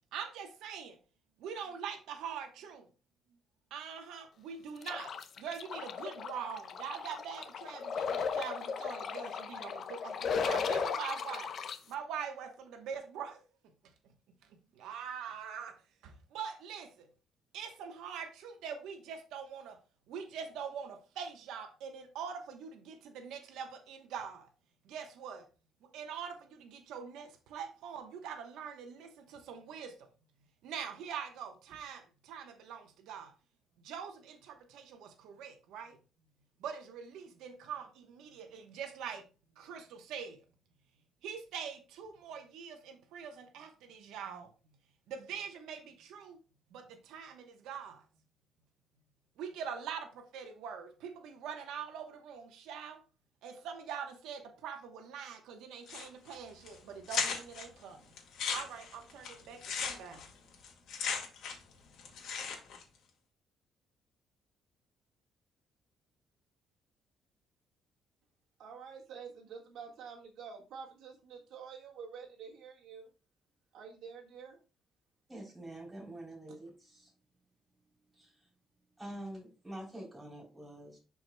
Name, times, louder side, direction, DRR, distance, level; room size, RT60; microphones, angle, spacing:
voice 1, 0.1-1.0 1.4-2.9 3.7-11.5 11.9-13.4 14.7-17.1 17.5-19.8 20.1-24.5 24.8-25.5 25.8-30.1 30.6-33.3 33.8-36.0 36.6-39.3 39.6-40.4 41.2-44.5 45.1-46.4 46.7-48.0 49.4-53.0 53.4-58.0 58.5-60.3, right 7 dB, 90° right, 1.0 m, -43 dB
sound 1, 4.8-11.8, left 6 dB, 40° left, 0.6 m, -36 dB
sound 2, 55.9-56.3 56.7-56.8 57.1-57.6 58.2-61.7 62.0-62.8, left 6 dB, 65° left, 2.0 m, -36 dB
voice 2, 68.6-73.1 73.7-74.6, right 6 dB, 65° right, 1.6 m, -48 dB
voice 3, 75.3-77.1 78.2-78.3 79.0-81.0, right 1 dB, 5° right, 3.3 m, -46 dB
11.0 x 4.7 x 2.2 m
cardioid pair, 175°, 0 cm